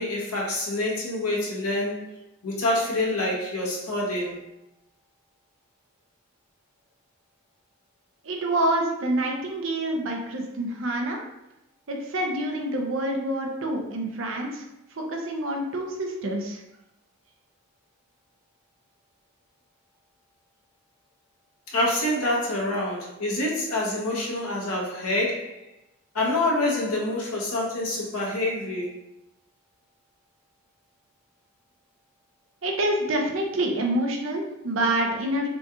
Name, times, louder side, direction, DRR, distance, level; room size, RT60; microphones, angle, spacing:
voice 1, 0.0-2.1 2.4-4.3 21.7-25.6 26.1-28.9, left 1 dB, 90° left, -3 dB, 1.2 m, -26 dB
voice 2, 8.3-11.2 11.9-14.6 15.0-16.6 32.6-35.5, right 1 dB, 65° right, 1 dB, 0.7 m, -27 dB
5.1 x 2.4 x 3.0 m, 0.88 s
head